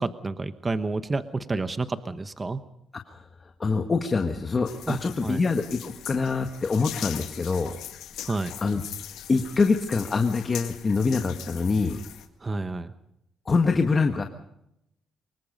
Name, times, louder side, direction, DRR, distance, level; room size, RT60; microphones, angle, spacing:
voice 1, 0.0-2.6 4.9-5.4 8.2-8.5 12.4-12.9, right 3 dB, 25° right, 11 dB, 1.1 m, -30 dB
voice 2, 3.6-7.7 8.6-8.8 9.3-12.0 13.5-14.2, left 4 dB, 35° left, 5 dB, 1.5 m, -25 dB
sound 1, 4.7-12.3, left 11 dB, 85° left, 2.0 m, -41 dB
24.5 x 21.5 x 5.3 m, 0.82 s
cardioid pair, 90°, 0 cm